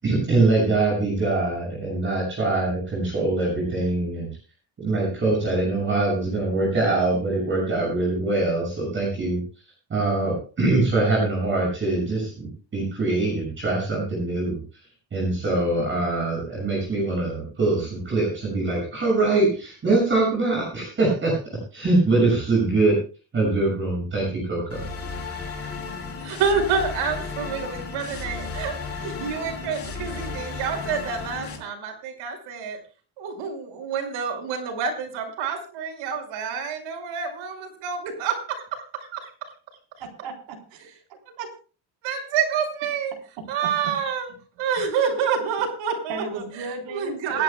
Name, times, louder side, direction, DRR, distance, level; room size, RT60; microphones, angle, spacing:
voice 1, 0.0-4.3 4.8-9.4 9.9-14.6 15.1-21.3 21.7-23.0 23.3-24.8, right 2 dB, 25° right, -3 dB, 6.7 m, -23 dB
sound 1, 24.7-31.6, left 4 dB, 30° left, 3.2 m, -34 dB
voice 2, 26.2-28.7 29.0-32.8 33.2-39.3 42.0-43.1 43.5-44.3 44.6-46.2 46.6-47.4, right 6 dB, 85° right, 3 dB, 5.6 m, -28 dB
voice 3, 40.0-40.9 41.4-41.5 46.1-47.4, right 4 dB, 70° right, 0 dB, 4.1 m, -35 dB
28.0 x 11.0 x 2.3 m, 0.37 s
cardioid pair, 180°, 47 cm